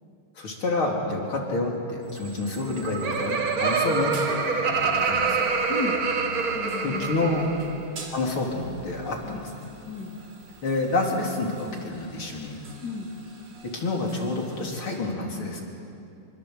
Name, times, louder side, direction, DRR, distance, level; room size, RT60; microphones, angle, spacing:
voice 1, 0.4-4.2 4.5-5.5 6.8-7.5 8.1-9.5 10.6-12.6 13.6-15.6, left 2 dB, 80° left, -1 dB, 4.3 m, -28 dB
sound 1, 2.0-15.0, right 2 dB, 75° right, 4.4 m, -46 dB
Laughter, 2.5-7.8, right 4 dB, 50° right, 1.8 m, -26 dB
voice 2, 5.7-6.0 6.5-7.1 7.8-8.0 9.2-9.4 9.9-10.2 12.8-13.1, left 3 dB, 55° left, -1 dB, 3.0 m, -34 dB
26.0 x 24.5 x 8.0 m, 2.6 s
omnidirectional pair, 2.3 m